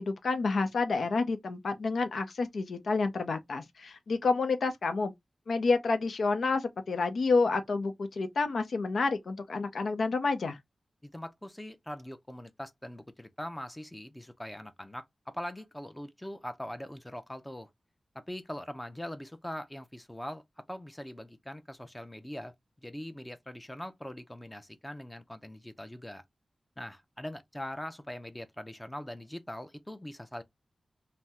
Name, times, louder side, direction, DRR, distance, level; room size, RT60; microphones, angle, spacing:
voice 1, 0.0-5.1 5.5-10.6, left 4 dB, 85° left, 0.6 m, -29 dB
voice 2, 11.0-17.7 18.1-20.4 20.7-22.5 22.8-26.2 26.8-30.4, left 1 dB, 10° left, 0.5 m, -42 dB
2.7 x 2.1 x 3.4 m
wide cardioid pair, 70°, 0 cm